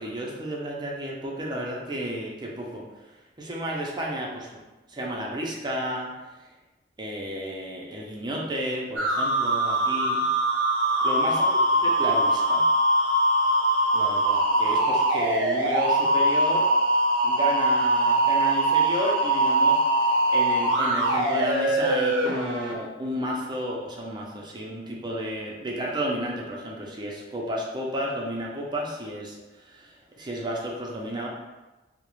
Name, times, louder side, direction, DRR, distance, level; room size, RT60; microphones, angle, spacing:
voice 1, 0.0-4.6 4.9-6.1 7.0-10.2 11.0-11.4 11.8-12.6 13.9-16.7 17.2-31.3, equal, 25° right, -3 dB, 0.4 m, -32 dB
sound 1, 9.0-22.7, right 1 dB, 85° right, 0.5 m, -22 dB
2.4 x 2.0 x 3.0 m, 1.1 s
head